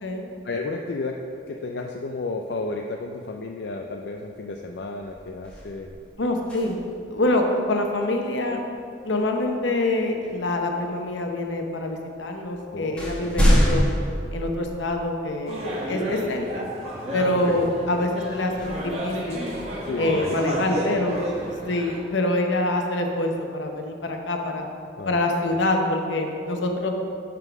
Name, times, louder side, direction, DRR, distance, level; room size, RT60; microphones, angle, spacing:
voice 1, 0.4-1.2 1.5-5.9 12.7-13.4 17.5-17.7 19.8-20.4 25.0-25.2 25.4-25.6, left 3 dB, 65° left, 2 dB, 0.4 m, -32 dB
sound 1, 4.4-4.6 5.0-7.1 9.2-9.4 10.2-11.0 11.9-12.0 12.4-15.2 15.8-15.9 18.5-20.6, equal, 5° left, 1.2 m, -26 dB
voice 2, 6.2-6.8 7.1-8.6 9.0-13.8 14.3-16.7 17.1-19.5 20.0-21.2 21.6-24.7 25.1-26.9, left 1 dB, 80° left, 3 dB, 0.9 m, -25 dB
sound 2, 15.5-22.0, equal, 35° right, 1.3 m, -31 dB
8.9 x 3.8 x 6.0 m, 2.4 s
head